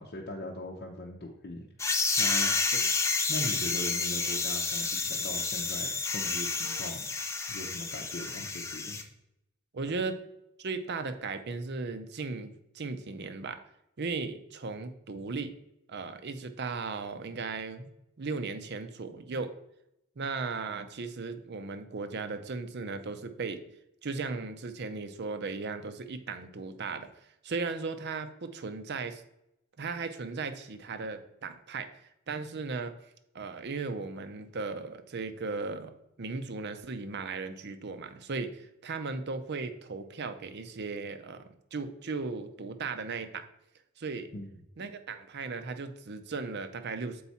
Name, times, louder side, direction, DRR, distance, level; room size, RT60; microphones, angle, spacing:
voice 1, 0.0-1.7 2.2-2.5 3.3-7.1 7.5-9.0 44.3-44.5, left 1 dB, 45° left, -2 dB, 0.7 m, -40 dB
sound 1, 1.8-9.0, left 4 dB, 15° left, 0.4 m, -30 dB
voice 2, 9.7-10.2 10.6-13.6 14.0-15.5 15.9-17.9 18.2-19.5 20.2-23.6 24.0-27.1 27.4-29.2 29.8-32.0 32.3-32.9 33.3-41.4 41.7-43.5 44.0-44.3 44.8-47.2, right 4 dB, 50° right, 9 dB, 0.6 m, -36 dB
7.1 x 4.7 x 4.1 m, 0.84 s
head